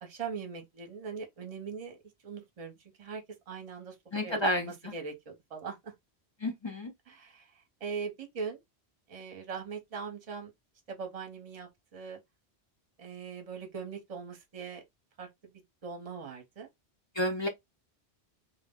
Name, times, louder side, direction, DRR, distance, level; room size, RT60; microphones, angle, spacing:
voice 1, 0.0-3.9 4.2-5.9 7.1-8.6 9.1-10.5 10.9-12.2 13.0-14.8 15.2-15.3 15.8-16.7, right 5 dB, 40° right, 0.7 m, -41 dB
voice 2, 4.1-4.9 6.4-6.9 17.1-17.5, equal, 40° left, 0.4 m, -30 dB
2.2 x 2.0 x 3.5 m
omnidirectional pair, 1.1 m